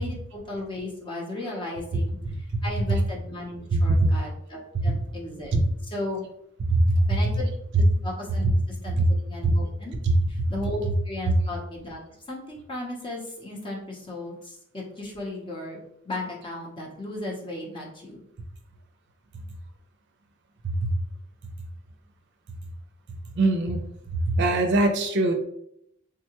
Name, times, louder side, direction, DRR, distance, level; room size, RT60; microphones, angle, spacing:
voice 1, 0.0-5.6 5.8-6.2 7.1-7.5 7.7-10.0 10.3-12.0 12.3-15.8 16.0-18.2, left 2 dB, 25° left, -2 dB, 0.7 m, -35 dB
voice 2, 3.7-4.1 4.7-4.8 5.5-5.6 6.7-7.1 9.0-9.1 9.4-9.5 10.0-10.1 20.8-20.9 23.4-23.8 24.4-25.3, right 2 dB, 55° right, 4 dB, 0.5 m, -21 dB
3.6 x 2.2 x 2.8 m, 0.74 s
head